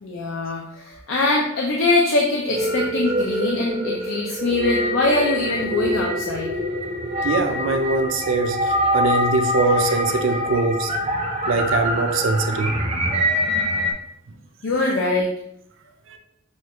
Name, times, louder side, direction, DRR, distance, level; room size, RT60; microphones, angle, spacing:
voice 1, 0.0-6.5 14.6-15.3, left 2 dB, 90° left, -1 dB, 0.6 m, -22 dB
sound 1, 2.4-13.9, equal, 30° right, 0.6 m, -25 dB
voice 2, 7.2-10.9 11.5-12.8 16.1-16.2, right 3 dB, 80° right, 7 dB, 0.5 m, -22 dB
6.3 x 2.4 x 2.9 m, 0.74 s
head